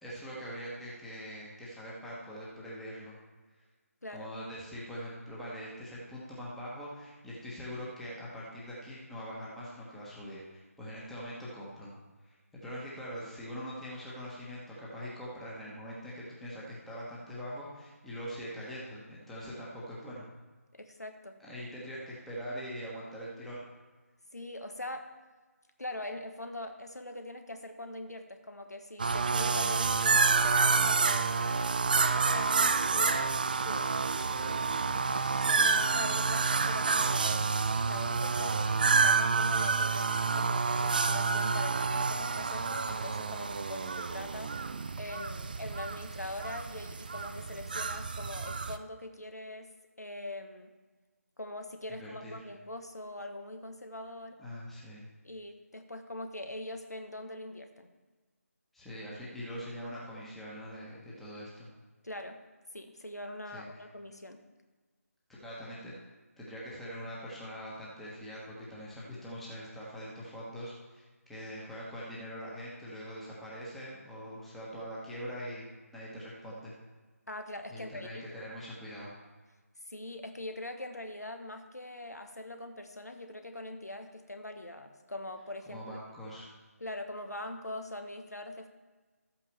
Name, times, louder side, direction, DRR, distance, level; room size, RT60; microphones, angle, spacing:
voice 1, 0.0-3.2 4.1-11.9 12.2-20.2 21.4-23.7 34.3-35.1 52.0-52.5 54.4-55.1 58.7-61.7 63.5-63.8 65.3-66.0 66.4-75.7 75.9-76.7 77.7-79.2 85.7-86.5, equal, ahead, -7 dB, 1.2 m, -43 dB
voice 2, 4.0-4.3 20.7-21.4 24.3-25.1 25.8-31.3 31.8-33.9 35.1-44.5 45.0-49.7 50.0-50.7 51.4-54.4 55.2-57.9 62.0-62.4 62.7-64.4 77.3-78.2 79.8-86.0 86.8-88.7, left 1 dB, 85° left, 6 dB, 1.2 m, -42 dB
sound 1, 29.0-48.8, right 4 dB, 35° right, 0.4 m, -29 dB
13.0 x 8.4 x 3.4 m, 1.3 s
figure-of-eight pair, 160°, 9 cm